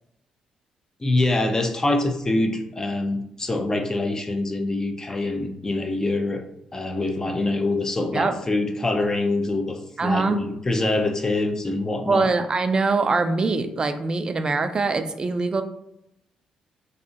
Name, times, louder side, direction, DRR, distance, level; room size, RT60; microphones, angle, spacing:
voice 1, 1.0-6.4 6.7-12.3, left 2 dB, 25° left, 5 dB, 0.4 m, -25 dB
voice 2, 10.0-10.4 12.1-15.6, right 3 dB, 35° right, 8 dB, 0.3 m, -23 dB
2.6 x 2.1 x 2.4 m, 0.81 s
supercardioid pair, 55°, 2 cm